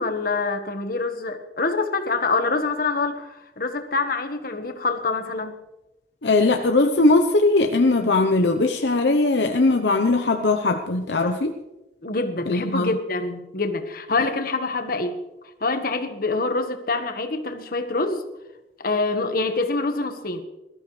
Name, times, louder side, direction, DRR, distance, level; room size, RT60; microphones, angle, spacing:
voice 1, 0.0-5.5 12.0-15.2 15.6-18.2 18.8-20.4, left 3 dB, 55° left, 7 dB, 1.4 m, -25 dB
voice 2, 6.2-11.6 12.5-12.9, left 2 dB, 75° left, 4 dB, 0.9 m, -20 dB
21.0 x 13.5 x 3.3 m, 0.99 s
head